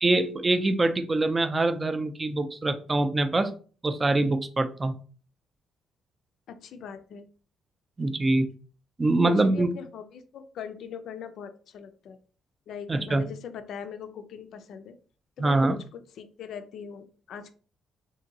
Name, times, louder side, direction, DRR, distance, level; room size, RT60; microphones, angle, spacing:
voice 1, 0.0-3.5 3.8-4.9 8.0-8.5 9.0-9.7 12.9-13.2 15.4-15.8, right 2 dB, 25° right, 9 dB, 0.4 m, -24 dB
voice 2, 6.5-7.3 9.2-12.2 12.7-15.0 15.4-17.5, left 7 dB, 75° left, 10 dB, 0.4 m, -41 dB
2.8 x 2.6 x 2.6 m, 0.40 s
cardioid pair, 90°, 0 cm